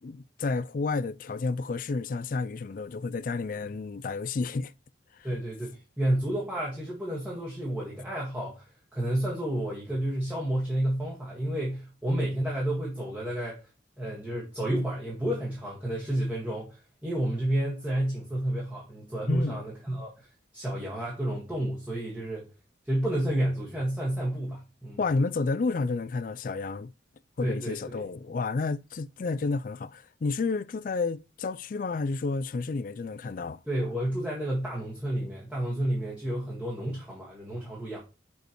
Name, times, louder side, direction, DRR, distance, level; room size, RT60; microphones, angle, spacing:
voice 1, 0.0-4.7 19.3-19.6 25.0-26.9 27.4-33.6, left 3 dB, 45° left, 0.4 m, -30 dB
voice 2, 5.2-13.7 14.0-20.3 20.5-22.5 22.8-25.0 27.4-28.0 33.6-38.0, right 1 dB, 10° right, 1.7 m, -30 dB
6.4 x 5.2 x 3.1 m
head